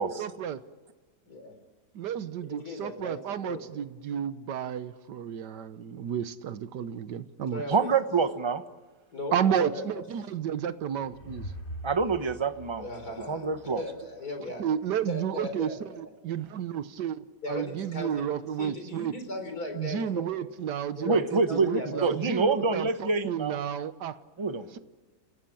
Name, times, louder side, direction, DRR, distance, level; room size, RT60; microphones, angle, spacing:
voice 1, 0.2-0.6 1.9-7.6 9.3-11.5 14.4-19.1 19.7-24.2 24.7-24.8, right 9 dB, 75° right, 12 dB, 1.6 m, -32 dB
voice 2, 2.5-3.6 7.5-7.9 9.1-10.0 12.8-13.5 13.8-14.6 15.1-16.0 17.4-18.3 18.6-20.2 21.0-22.0 24.6-24.7, left 2 dB, 55° left, 5 dB, 4.6 m, -37 dB
voice 3, 7.7-8.6 11.8-12.8 13.3-13.8 21.0-23.6 24.4-24.6, right 4 dB, 20° right, 9 dB, 0.9 m, -26 dB
sound 1, 10.7-13.9, right 1 dB, 35° left, 3.0 m, -43 dB
30.0 x 17.5 x 8.7 m, 1.3 s
omnidirectional pair, 1.9 m